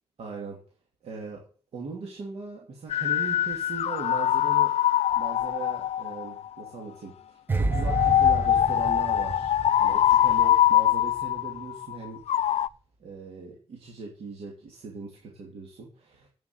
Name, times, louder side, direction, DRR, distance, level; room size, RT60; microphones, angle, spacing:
voice 1, 0.2-0.6 1.0-1.4 1.7-4.7 5.2-7.1 7.5-9.5 9.8-12.2 13.0-16.3, right 4 dB, 70° right, -2 dB, 2.9 m, -39 dB
sound 1, 2.9-6.7 7.7-12.7, left 11 dB, 80° left, 0.4 m, -23 dB
sound 2, 7.5-10.7 10.9-11.2, right 3 dB, 20° right, 0.6 m, -30 dB
8.7 x 7.5 x 8.1 m, 0.39 s
wide cardioid pair, 175°, 11 cm